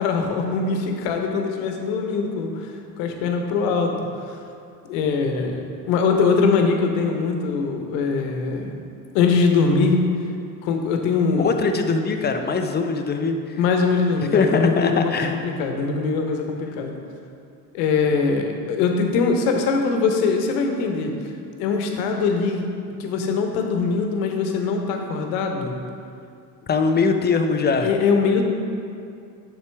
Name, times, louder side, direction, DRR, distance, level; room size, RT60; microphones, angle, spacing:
voice 1, 0.0-4.0 4.3-4.4 4.9-8.7 9.1-10.1 10.6-11.5 13.6-17.0 17.7-21.1 21.6-22.7 23.0-25.7 27.8-28.5, left 4 dB, 65° left, 3 dB, 1.1 m, -22 dB
voice 2, 11.4-13.4 14.3-15.3 26.7-27.9, left 4 dB, 20° left, 6 dB, 0.6 m, -21 dB
8.1 x 6.1 x 3.4 m, 2.5 s
hypercardioid pair, 65°, 50 cm